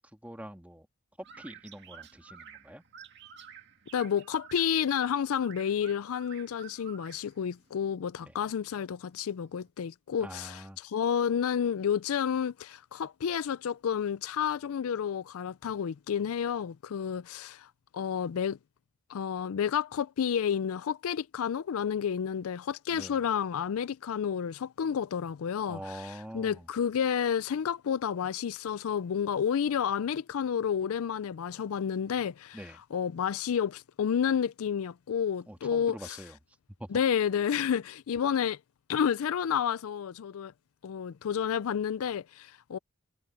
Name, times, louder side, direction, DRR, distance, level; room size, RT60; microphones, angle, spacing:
voice 1, 0.1-0.9 1.2-2.8 8.2-8.3 10.2-10.8 22.9-23.2 25.7-26.7 32.5-32.8 35.4-36.4 36.8-36.9, right 1 dB, 5° right, 1.8 m, -44 dB
sound 1, 1.2-9.7, right 7 dB, 50° right, 2.2 m, -52 dB
voice 2, 3.9-18.6 19.1-25.8 26.3-32.6 32.9-36.2 36.9-38.6 38.9-40.5 40.8-42.8, left 8 dB, 75° left, 0.4 m, -30 dB
head